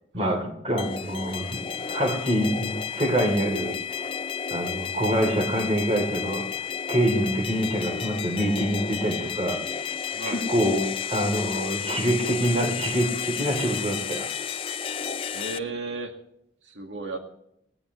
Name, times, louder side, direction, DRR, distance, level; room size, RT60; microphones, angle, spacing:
voice 1, 0.1-4.1 4.5-6.5 6.9-10.0 10.2-10.8 11.1-14.3, equal, 35° right, 5 dB, 3.4 m, -26 dB
sound 1, 0.8-15.6, left 7 dB, 30° left, 0.5 m, -32 dB
voice 2, 10.1-10.5 15.3-16.1 16.6-17.2, right 3 dB, 90° right, 3 dB, 2.1 m, -34 dB
19.0 x 18.5 x 3.2 m, 0.78 s
head